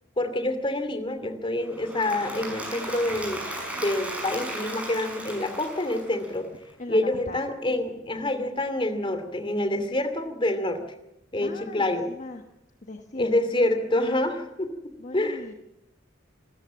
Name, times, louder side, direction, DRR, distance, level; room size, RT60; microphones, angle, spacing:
voice 1, 0.2-3.4 3.8-6.5 6.9-10.8 11.3-12.1 13.2-15.4, left 1 dB, 30° left, 8 dB, 2.6 m, -27 dB
Applause / Crowd, 1.7-6.6, right 1 dB, 5° right, 5.9 m, -36 dB
voice 2, 11.4-12.4 12.8-13.3 15.0-15.5, left 2 dB, 45° left, 5 dB, 1.2 m, -39 dB
26.0 x 14.0 x 7.4 m, 0.87 s
head